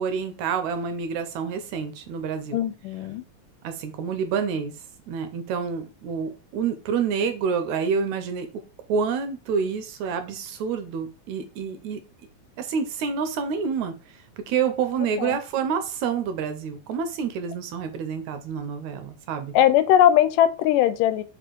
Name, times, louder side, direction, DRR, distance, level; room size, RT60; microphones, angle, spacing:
voice 1, 0.0-2.6 3.6-4.7 5.1-8.6 8.9-12.0 12.6-19.5, right 6 dB, 75° right, 1.9 m, -28 dB
voice 2, 2.5-3.2 15.2-15.4 19.5-21.2, left 11 dB, 85° left, 2.2 m, -19 dB
4.9 x 4.2 x 4.5 m
omnidirectional pair, 3.7 m